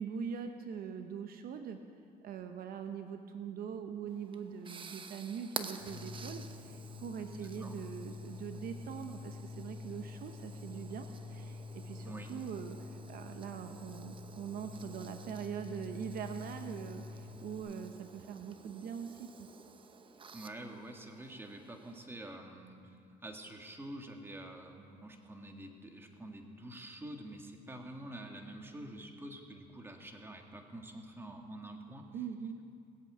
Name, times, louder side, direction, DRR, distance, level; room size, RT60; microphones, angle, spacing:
voice 1, 0.0-1.8 2.2-19.5 32.1-32.6, right 7 dB, 60° right, 6 dB, 0.8 m, -42 dB
sound 1, 4.1-22.1, right 5 dB, 30° right, 0.9 m, -51 dB
sound 2, 5.8-17.6, left 5 dB, 70° left, 2.7 m, -47 dB
voice 2, 7.4-7.8 12.0-12.3 20.3-32.1, right 1 dB, 15° right, 3 dB, 1.7 m, -47 dB
19.0 x 7.8 x 8.5 m, 2.4 s
cardioid pair, 110°, 17 cm